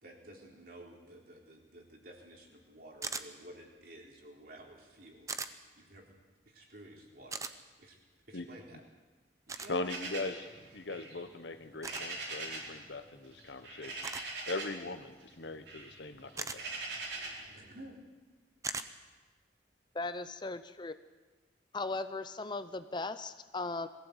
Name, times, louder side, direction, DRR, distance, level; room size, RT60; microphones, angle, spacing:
voice 1, 0.0-5.4 5.8-6.1 6.5-7.4 7.8-8.0 8.3-8.8 9.5-9.8 17.5-18.0, right 1 dB, 55° right, 0 dB, 3.9 m, -53 dB
sound 1, 3.0-3.3 5.3-5.5 7.3-7.5 9.5-9.7 11.8-12.1 14.0-14.3 16.4-16.6 18.6-18.9, right 4 dB, 20° right, 0.8 m, -38 dB
voice 2, 9.7-10.5 10.7-14.0 14.5-16.6, left 2 dB, 75° left, 9 dB, 1.2 m, -40 dB
sound 2, 9.8-12.8 13.0-14.9 15.2-17.5, right 3 dB, 75° right, 4.4 m, -42 dB
voice 3, 19.9-20.9 21.7-23.9, left 3 dB, 25° left, 11 dB, 0.6 m, -37 dB
21.5 x 15.5 x 8.2 m, 1.3 s
head